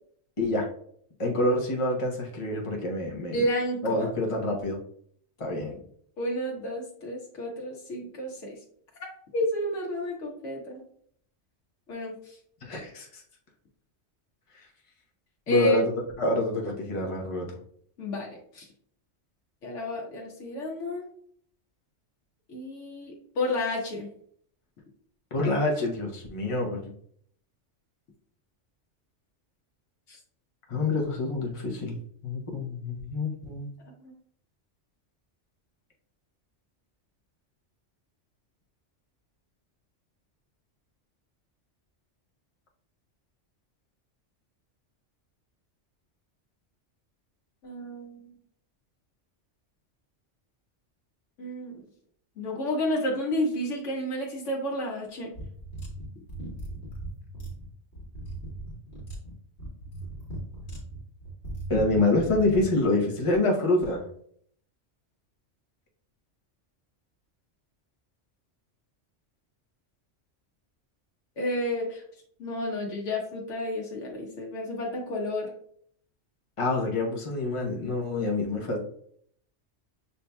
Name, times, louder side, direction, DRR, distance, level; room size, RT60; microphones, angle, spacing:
voice 1, 0.4-0.7 1.2-3.4 3.8-4.8 5.4-5.8 12.6-13.2 14.5-14.6 15.5-15.9 16.2-17.5 25.3-26.9 30.7-32.0 32.2-33.7 61.7-64.0 76.6-78.8, left 2 dB, 30° left, -1 dB, 0.8 m, -27 dB
voice 2, 3.3-4.1 6.2-8.6 9.3-10.8 11.9-12.4 15.5-15.8 18.0-18.7 19.6-21.0 22.5-24.1 30.1-30.2 34.0-34.1 47.6-48.3 51.4-51.8 52.4-55.3 71.4-72.0 72.4-75.5, left 1 dB, 80° left, -1 dB, 1.2 m, -31 dB
sound 1, 55.3-62.7, right 1 dB, 60° left, 1.6 m, -38 dB
6.7 x 2.7 x 2.2 m, 0.63 s
omnidirectional pair, 1.2 m